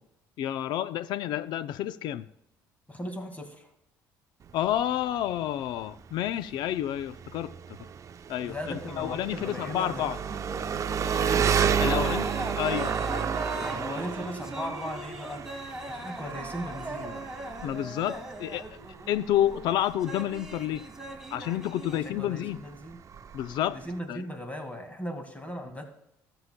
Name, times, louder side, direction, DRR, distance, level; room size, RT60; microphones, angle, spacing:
voice 1, 0.4-2.3 4.5-7.8 8.3-10.2 11.8-12.3 12.6-13.6 17.6-18.8 19.1-20.9 21.3-22.6 23.3-23.8 24.1-24.2, left 12 dB, 70° left, 13 dB, 0.5 m, -30 dB
voice 2, 2.9-3.7 8.4-10.0 11.1-11.5 11.8-12.2 13.6-15.4 15.9-17.3 22.0-23.0 23.7-25.8, equal, 20° left, 5 dB, 1.9 m, -37 dB
Engine, 4.4-24.0, right 7 dB, 45° right, 0.6 m, -32 dB
sound 1, 10.3-22.0, right 1 dB, 5° right, 1.9 m, -39 dB
20.0 x 7.1 x 2.2 m, 0.78 s
supercardioid pair, 75°, 8 cm